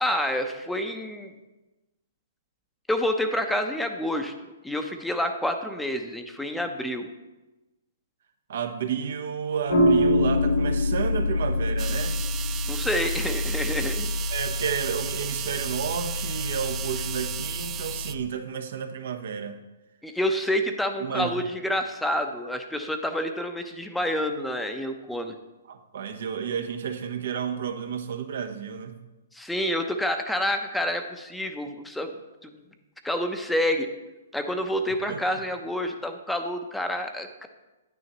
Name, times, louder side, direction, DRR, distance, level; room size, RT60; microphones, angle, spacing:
voice 1, 0.0-1.3 2.9-4.3 4.6-7.1 12.7-14.1 20.0-25.3 29.3-32.1 32.4-32.6 33.0-33.9 34.3-37.5, left 1 dB, 5° left, 6 dB, 0.8 m, -28 dB
voice 2, 8.5-12.2 14.3-19.6 21.0-21.3 25.7-29.0 35.1-35.4, right 7 dB, 65° right, 6 dB, 1.0 m, -31 dB
sound 1, 9.7-18.2, left 1 dB, 80° left, 2.3 m, -26 dB
sound 2, 11.8-18.1, right 12 dB, 25° right, 0.3 m, -35 dB
9.6 x 9.4 x 3.0 m, 1.1 s
hypercardioid pair, 135°, 0 cm